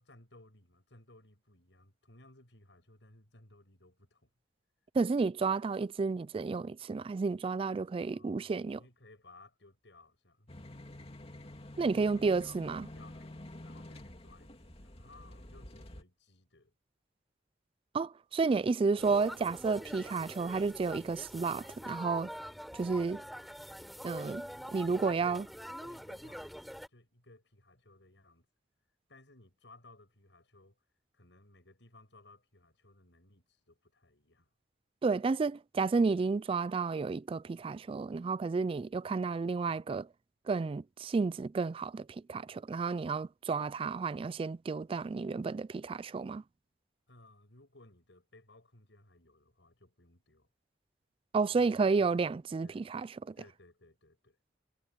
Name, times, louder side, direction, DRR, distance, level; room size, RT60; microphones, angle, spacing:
voice 1, 0.0-4.3 8.1-10.5 11.9-16.7 24.9-25.5 25.8-28.5 29.1-30.8 31.1-34.5 47.1-50.5 51.5-52.2 52.6-52.8 53.4-54.4, left 2 dB, 80° left, 6.4 m, -60 dB
voice 2, 4.9-8.8 11.8-12.9 17.9-22.3 22.8-23.2 24.0-24.4 24.7-25.4 35.0-40.1 40.5-46.4 51.3-53.4, right 4 dB, 30° right, 0.3 m, -31 dB
sound 1, 10.5-16.0, left 1 dB, 35° left, 2.7 m, -49 dB
sound 2, 19.0-26.9, equal, ahead, 5.0 m, -45 dB
head